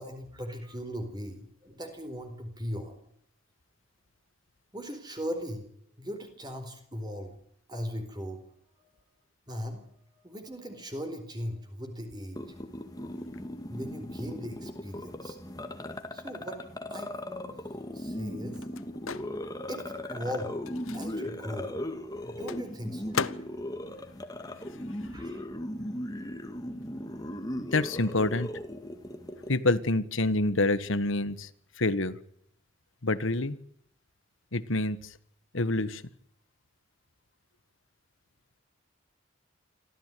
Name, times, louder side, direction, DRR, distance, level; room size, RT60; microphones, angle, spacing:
voice 1, 0.0-3.0 4.7-5.7 6.0-7.4 7.7-8.4 8.8-8.9 9.5-12.6 13.7-15.4 16.1-16.6 16.9-18.9 19.7-20.5 20.9-21.7 22.2-23.5 25.0-25.4, equal, 20° right, 6 dB, 4.3 m, -39 dB
sound 1, 12.4-29.6, left 1 dB, 20° left, 2.0 m, -38 dB
Microwave oven, 17.2-25.3 25.6-27.5, left 6 dB, 90° left, 0.9 m, -41 dB
voice 2, 27.6-28.5 29.5-31.5 31.8-32.2 33.0-33.6 34.5-35.1 35.5-36.0, left 2 dB, 70° left, 15 dB, 1.5 m, -27 dB
27.0 x 14.5 x 9.3 m, 0.71 s
head